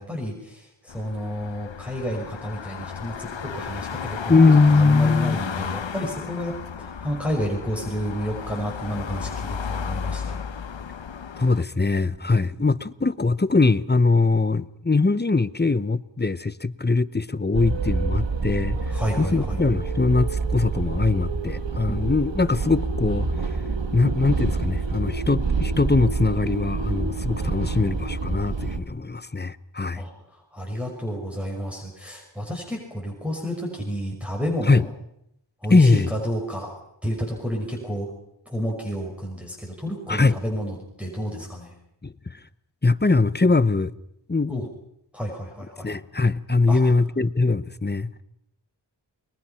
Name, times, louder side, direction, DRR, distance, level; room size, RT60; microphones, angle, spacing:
voice 1, 0.0-4.3 4.7-6.5 6.8-10.4 18.9-19.6 21.9-22.0 29.9-30.1 30.5-34.9 35.6-38.1 38.5-41.7 44.5-44.7 45.1-45.9 46.7-46.8, equal, 5° right, -2 dB, 6.0 m, -30 dB
sound 1, 0.9-11.6, left 6 dB, 85° left, 1.1 m, -33 dB
voice 2, 4.3-5.4 11.4-23.6 23.9-30.0 34.7-34.9 35.7-36.1 40.1-40.4 42.0-42.4 42.8-43.9 44.3-44.7 45.8-48.2, left 3 dB, 25° left, 16 dB, 0.9 m, -21 dB
sound 2, 17.5-28.8, right 4 dB, 80° right, 1.9 m, -27 dB
29.5 x 22.0 x 5.8 m, 0.76 s
wide cardioid pair, 60°, 44 cm